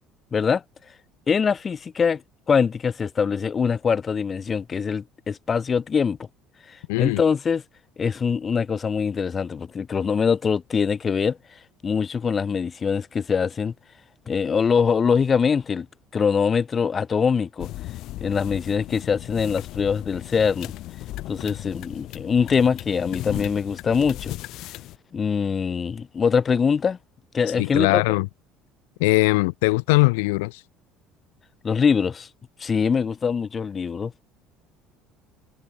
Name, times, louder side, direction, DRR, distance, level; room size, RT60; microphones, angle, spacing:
voice 1, 0.3-0.6 1.3-2.2 2.5-6.2 6.7-7.6 8.0-11.4 11.8-13.7 14.3-15.9 16.1-17.7 18.2-20.7 21.3-24.3 25.1-27.0 27.3-28.0 31.6-32.3 32.6-34.1, left 6 dB, 35° left, 0.6 m, -23 dB
voice 2, 6.9-7.2 27.6-28.3 29.0-30.6, left 25 dB, 85° left, 0.5 m, -20 dB
sound 1, 17.6-25.0, left 16 dB, 65° left, 0.9 m, -36 dB
supercardioid pair, 85°, 0 cm